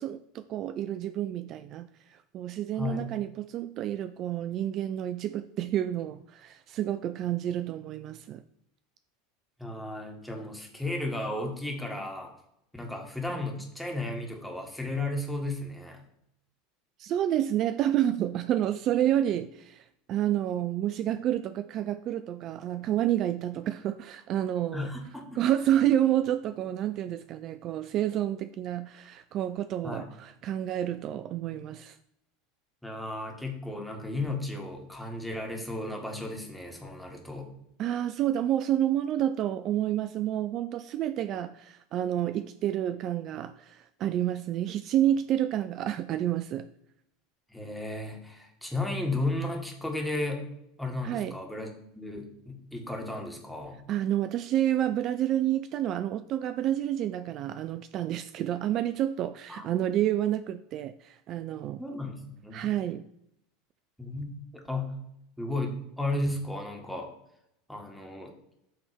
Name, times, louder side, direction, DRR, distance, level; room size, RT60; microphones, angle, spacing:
voice 1, 0.0-8.4 17.0-24.9 25.4-32.0 37.8-46.7 51.0-51.4 53.9-61.8 62.5-63.1, right 11 dB, 45° right, 0.3 m, -29 dB
voice 2, 2.8-3.1 9.6-12.3 12.7-16.0 24.7-25.4 29.8-30.1 32.8-37.5 47.5-50.5 50.8-53.8 59.5-60.0 61.8-62.7 64.0-64.9 65.4-67.1 67.7-68.3, left 2 dB, 5° left, 1.8 m, -34 dB
7.8 x 3.4 x 5.2 m
figure-of-eight pair, 75°, 0 cm